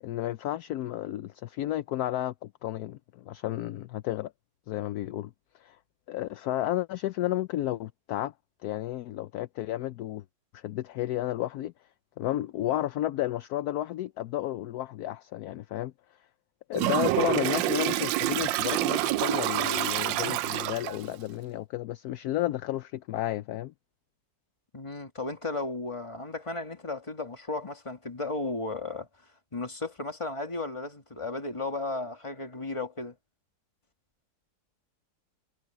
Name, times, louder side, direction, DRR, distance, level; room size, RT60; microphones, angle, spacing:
voice 1, 0.0-4.3 4.7-5.8 6.1-8.3 8.6-10.2 10.5-11.7 12.2-15.9 16.7-23.7, left 14 dB, 70° left, 0.9 m, -32 dB
Toilet flush, 16.7-21.1, right 15 dB, 80° right, 1.3 m, -27 dB
voice 2, 24.7-29.1 29.5-33.2, left 2 dB, 15° left, 2.1 m, -34 dB
omnidirectional pair, 2.0 m